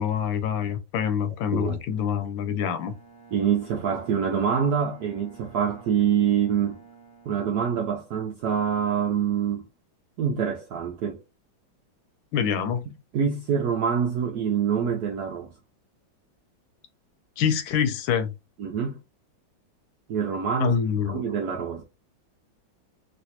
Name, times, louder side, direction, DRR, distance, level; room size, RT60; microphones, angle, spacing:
voice 1, 0.0-2.9 12.3-12.8 17.4-18.3 20.6-21.3, left 8 dB, 80° left, 1.3 m, -26 dB
voice 2, 1.3-1.8 3.3-6.8 7.3-9.6 10.2-11.2 13.1-15.5 18.6-19.0 20.1-20.8 21.1-21.8, right 7 dB, 75° right, 0.9 m, -25 dB
Bowed string instrument, 2.7-8.2, right 5 dB, 35° right, 0.4 m, -50 dB
3.2 x 2.9 x 2.7 m
omnidirectional pair, 2.2 m